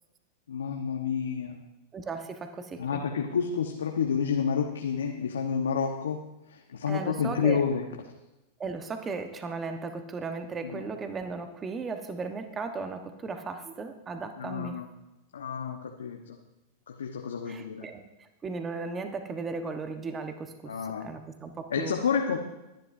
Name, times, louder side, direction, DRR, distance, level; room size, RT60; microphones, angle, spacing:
voice 1, 0.5-1.6 2.8-6.2 6.5-7.8 10.6-10.9 14.4-14.9 15.3-16.4 16.9-17.9 20.6-21.1 21.7-22.4, left 6 dB, 80° left, 2 dB, 1.1 m, -29 dB
voice 2, 1.9-3.0 6.9-7.6 8.6-14.8 17.5-18.0 18.4-20.7 21.0-22.0, right 4 dB, 25° right, 7 dB, 1.2 m, -36 dB
22.0 x 10.5 x 2.7 m, 0.99 s
hypercardioid pair, 95°, 0 cm